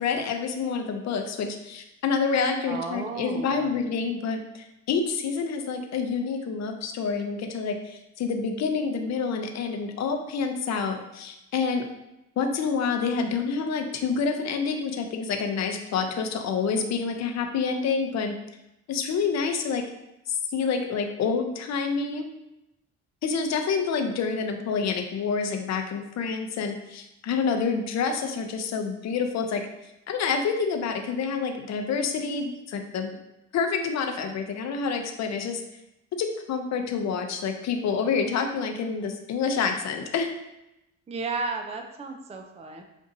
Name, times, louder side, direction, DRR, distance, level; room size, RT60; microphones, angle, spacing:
voice 1, 0.0-11.9 12.4-18.4 18.9-19.9 20.3-22.3 23.2-29.6 30.1-33.1 33.5-35.6 36.2-40.3, left 5 dB, 60° left, 5 dB, 0.6 m, -28 dB
voice 2, 2.7-3.9 41.1-42.8, right 3 dB, 20° right, 5 dB, 0.4 m, -34 dB
6.1 x 2.6 x 2.6 m, 0.90 s
cardioid pair, 90°, 30 cm